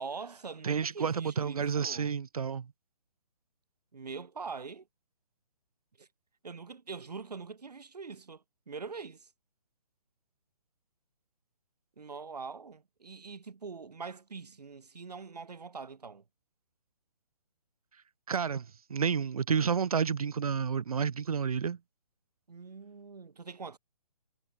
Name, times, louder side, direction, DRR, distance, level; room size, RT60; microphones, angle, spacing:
voice 1, 0.0-2.1 3.9-4.9 6.0-6.1 6.4-9.3 12.0-16.2 22.5-23.8, right 5 dB, 80° right, 5.1 m, -43 dB
voice 2, 0.6-2.7 18.3-21.8, right 6 dB, 65° right, 1.8 m, -30 dB
hypercardioid pair, 160°, 20 cm